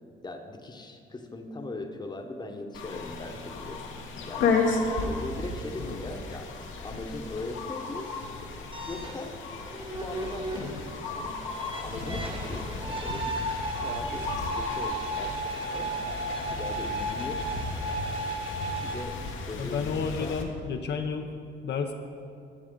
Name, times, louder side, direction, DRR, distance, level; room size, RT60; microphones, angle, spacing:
voice 1, 0.2-3.8 4.3-4.6 5.1-6.5 6.8-8.1 8.9-9.4 10.0-10.7 11.2-11.4 11.8-13.4 13.8-16.0 16.5-17.5 18.8-19.2 19.5-19.9 20.2-20.4, left 2 dB, 20° left, 5 dB, 0.9 m, -39 dB
sound 1, 2.7-20.4, left 4 dB, 80° left, 1.1 m, -34 dB
sound 2, 8.7-19.0, right 1 dB, 25° right, 1.1 m, -35 dB
voice 2, 19.6-21.3 21.6-21.9, left 5 dB, 60° left, 4 dB, 0.6 m, -31 dB
13.0 x 7.3 x 3.8 m, 2.5 s
cardioid pair, 90°, 20 cm